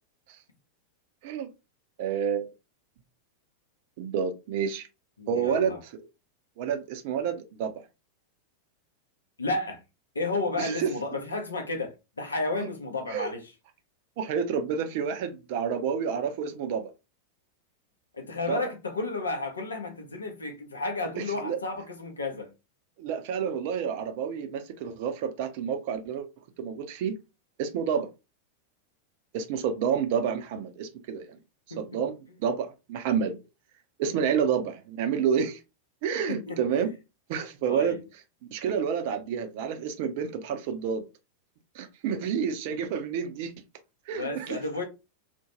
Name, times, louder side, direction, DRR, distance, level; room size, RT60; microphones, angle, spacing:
voice 1, 2.0-2.5 4.0-4.9 5.3-5.7 6.6-7.8 10.6-10.9 13.1-13.3 14.2-16.9 18.5-18.6 21.2-21.6 23.0-26.3 26.6-27.1 27.6-28.1 29.3-31.4 31.8-33.4 34.0-35.6 36.0-36.9 37.3-38.0 38.5-41.0 41.7-43.5 44.1-44.6, right 7 dB, 50° right, 0.5 m, -29 dB
voice 2, 5.2-5.8 9.4-9.8 10.1-13.5 18.1-22.5 31.7-31.8 36.3-36.6 37.7-38.0 44.1-44.8, left 2 dB, 75° left, 0.6 m, -32 dB
2.4 x 2.2 x 2.8 m
figure-of-eight pair, 90°, 0 cm